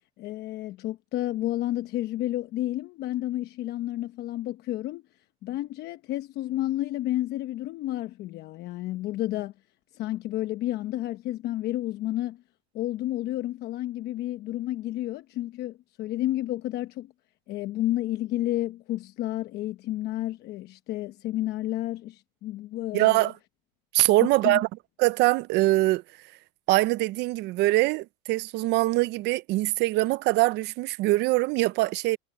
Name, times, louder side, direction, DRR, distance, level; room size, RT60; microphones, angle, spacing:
voice 1, 0.2-5.0 5.4-9.5 9.9-12.4 12.7-17.1 17.5-23.3 24.4-24.6, left 14 dB, 55° left, 1.0 m, -31 dB
voice 2, 22.9-23.3 23.9-24.7 25.0-26.0 26.7-32.2, right 19 dB, 55° right, 0.8 m, -23 dB
supercardioid pair, 120°, 20 cm